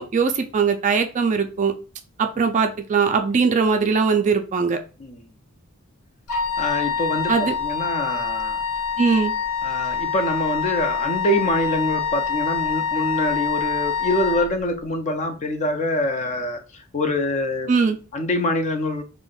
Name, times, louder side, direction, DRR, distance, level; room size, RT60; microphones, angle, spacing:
voice 1, 0.0-1.7 2.2-4.8 7.3-7.5 9.0-9.3 17.7-18.0, right 5 dB, 35° right, 0.3 m, -20 dB
Wind instrument woodwind instrument, 6.3-14.5, left 6 dB, 80° left, 0.7 m, -26 dB
voice 2, 6.6-8.6 9.6-17.7 18.1-19.0, left 1 dB, 35° left, 0.4 m, -25 dB
2.5 x 2.1 x 3.8 m
head